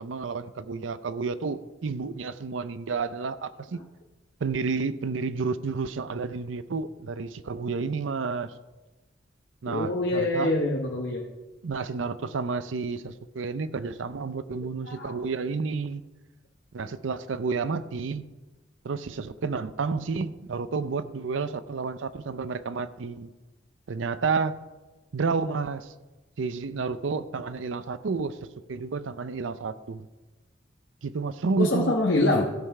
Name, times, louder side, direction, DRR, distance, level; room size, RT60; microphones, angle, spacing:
voice 1, 0.0-3.8 4.4-8.5 9.6-10.5 11.6-16.0 16.7-18.3 18.8-23.3 23.9-24.6 25.1-25.9 26.4-28.4 28.7-30.1 31.0-31.9, right 4 dB, 80° right, 14 dB, 0.5 m, -30 dB
voice 2, 9.7-11.2 14.9-15.1 31.6-32.4, left 2 dB, 65° left, -1 dB, 1.0 m, -25 dB
15.5 x 5.6 x 4.8 m, 1.2 s
head